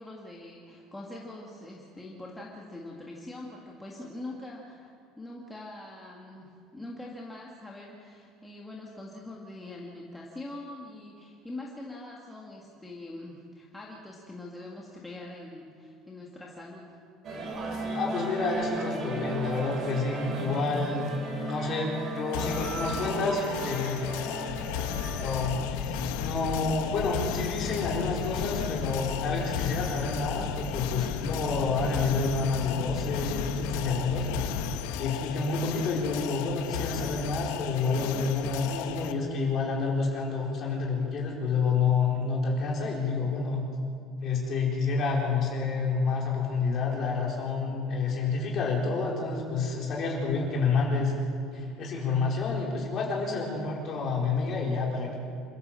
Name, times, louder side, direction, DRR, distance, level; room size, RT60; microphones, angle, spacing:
voice 1, 0.0-17.0, left 2 dB, 5° left, -3 dB, 1.7 m, -43 dB
sound 1, 17.2-25.5, right 2 dB, 30° right, 3.3 m, -35 dB
voice 2, 17.9-24.1 25.2-34.3 35.0-43.6 44.2-51.1 51.5-55.2, left 4 dB, 35° left, -2 dB, 4.3 m, -29 dB
sound 2, 22.3-39.1, left 10 dB, 85° left, 1.2 m, -36 dB
Fire, 24.5-34.8, left 7 dB, 60° left, 1.3 m, -36 dB
27.5 x 13.0 x 7.6 m, 2.4 s
cardioid pair, 175°, 0 cm